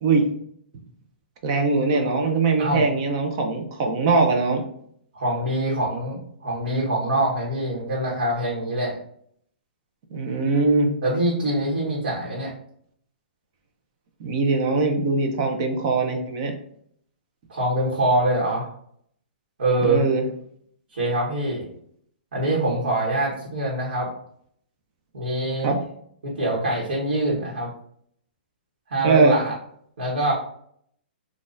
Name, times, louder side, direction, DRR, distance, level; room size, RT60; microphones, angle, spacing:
voice 1, 1.4-4.6 10.1-10.9 14.2-16.5 19.8-20.2 25.6-25.8 29.0-29.4, right 3 dB, 30° right, 3 dB, 0.5 m, -21 dB
voice 2, 5.1-9.0 11.0-12.5 17.5-18.7 19.6-20.0 20.9-21.7 22.3-24.1 25.1-25.7 26.2-27.7 28.9-29.5 30.0-30.3, right 1 dB, 75° right, -5 dB, 1.3 m, -24 dB
3.9 x 2.4 x 2.5 m, 0.65 s
hypercardioid pair, 170°, 6 cm